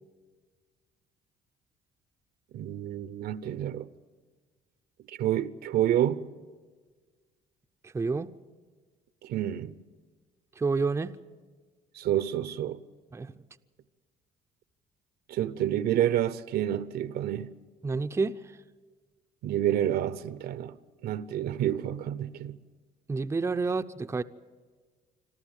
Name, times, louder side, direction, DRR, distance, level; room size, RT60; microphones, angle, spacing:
voice 1, 2.5-3.9 5.1-6.2 9.2-9.7 11.9-12.8 15.3-17.6 19.4-20.8 21.0-22.6, right 11 dB, 70° right, 0.8 m, -29 dB
voice 2, 7.8-8.3 10.6-11.2 13.1-13.4 17.8-18.6 23.1-24.2, right 4 dB, 15° right, 0.5 m, -29 dB
26.5 x 13.5 x 8.9 m
cardioid pair, 110°, 17 cm